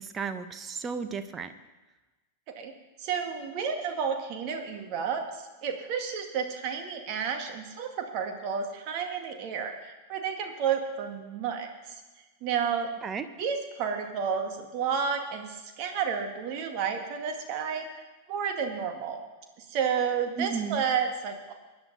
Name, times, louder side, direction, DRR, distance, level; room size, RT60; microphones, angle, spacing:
voice 1, 0.0-1.5 13.0-13.3 20.4-20.8, right 6 dB, 20° right, 9 dB, 1.1 m, -34 dB
voice 2, 3.0-12.0 12.4-12.9 13.4-19.2 19.6-21.5, right 6 dB, 40° right, 4 dB, 2.1 m, -31 dB
24.0 x 10.0 x 4.1 m, 1.1 s
figure-of-eight pair, 90°, 0 cm